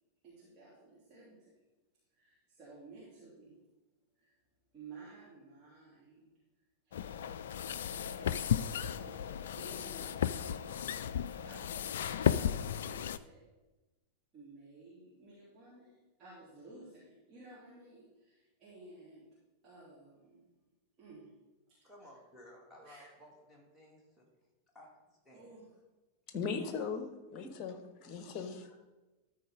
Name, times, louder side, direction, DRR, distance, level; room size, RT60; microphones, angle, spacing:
voice 1, 0.2-1.5 2.1-3.6 4.1-4.4 4.7-6.3 6.8-7.4 8.1-13.5 14.3-19.3 19.6-20.5 21.0-21.3 21.7-21.8 22.8-23.0 25.3-25.7, right 3 dB, 30° right, -9 dB, 3.0 m, -55 dB
sound 1, 6.9-13.2, left 9 dB, 60° left, 0.3 m, -34 dB
voice 2, 21.8-24.3 24.7-25.5 26.6-26.9 28.7-28.8, equal, ahead, -4 dB, 2.5 m, -57 dB
voice 3, 26.3-27.1 27.3-28.7, left 5 dB, 35° left, 8 dB, 1.2 m, -38 dB
13.0 x 4.6 x 5.0 m, 1.1 s
figure-of-eight pair, 90°, 0 cm